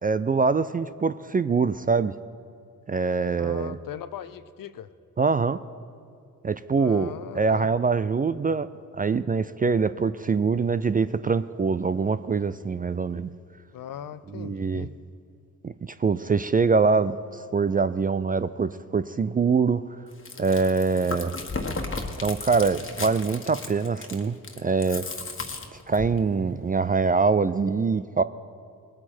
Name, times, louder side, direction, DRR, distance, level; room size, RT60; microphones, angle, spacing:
voice 1, 0.0-2.1 2.9-3.8 5.2-5.6 6.4-8.7 8.9-13.3 14.3-14.9 15.6-19.8 20.4-21.3 22.2-25.1 25.9-28.2, right 4 dB, 20° right, 13 dB, 0.4 m, -24 dB
voice 2, 3.4-4.9 6.8-7.7 13.7-14.9, left 10 dB, 55° left, 14 dB, 0.7 m, -39 dB
Chewing mastication, 20.1-26.2, left 3 dB, 30° left, 1.6 m, -35 dB
19.5 x 8.7 x 4.4 m, 2.4 s
hypercardioid pair, 40°, 40 cm